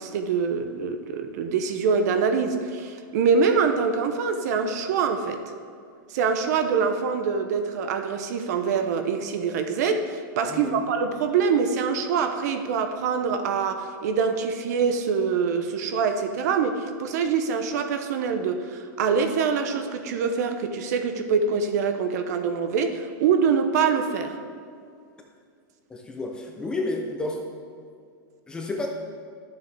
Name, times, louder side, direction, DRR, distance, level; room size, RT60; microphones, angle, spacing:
voice 1, 0.0-5.4 6.1-24.4, right 5 dB, 55° right, 8 dB, 0.7 m, -24 dB
voice 2, 10.5-10.8 25.9-27.4 28.5-28.9, left 2 dB, 10° left, 1 dB, 0.6 m, -30 dB
11.5 x 6.9 x 3.4 m, 2.2 s
supercardioid pair, 170°, 11 cm